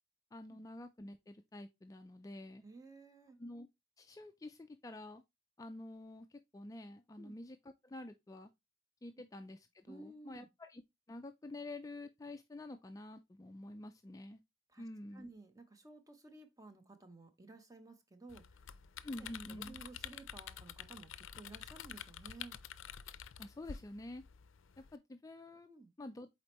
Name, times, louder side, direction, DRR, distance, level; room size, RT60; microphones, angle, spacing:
voice 1, 0.3-2.6 3.4-3.7 4.0-5.2 5.6-8.5 9.0-10.8 11.1-14.4 14.8-15.3 19.0-19.8 23.4-24.2 24.8-25.7 26.0-26.3, left 1 dB, 15° left, 0.3 m, -48 dB
voice 2, 2.6-3.4 7.2-7.3 9.9-10.5 14.7-14.9 15.1-18.6 19.2-22.6 25.6-25.9, right 2 dB, 15° right, 0.9 m, -55 dB
sound 1, 18.3-25.0, left 9 dB, 75° left, 0.5 m, -49 dB
7.7 x 4.3 x 3.0 m
head